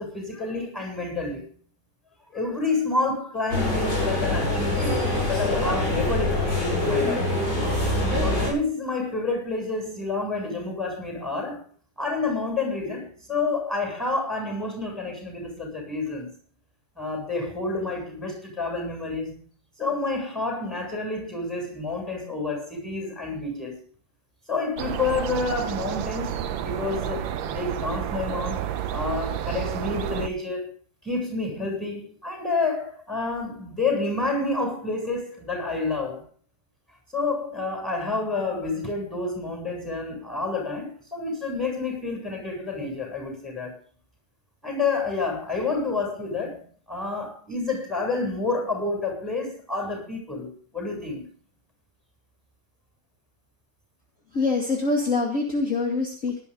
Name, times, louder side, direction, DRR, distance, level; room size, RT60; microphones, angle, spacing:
voice 1, 0.0-1.5 2.3-7.3 8.2-11.6 12.0-16.3 17.0-19.4 19.8-23.8 24.5-30.6 31.0-36.2 37.1-43.7 44.6-51.3, left 3 dB, ahead, 1 dB, 7.7 m, -29 dB
sound 1, 3.5-8.5, left 1 dB, 65° left, 8.3 m, -24 dB
sound 2, 24.8-30.3, right 10 dB, 90° right, 1.6 m, -30 dB
voice 2, 54.3-56.4, left 3 dB, 40° left, -1 dB, 2.6 m, -25 dB
18.0 x 12.5 x 3.8 m, 0.44 s
omnidirectional pair, 2.1 m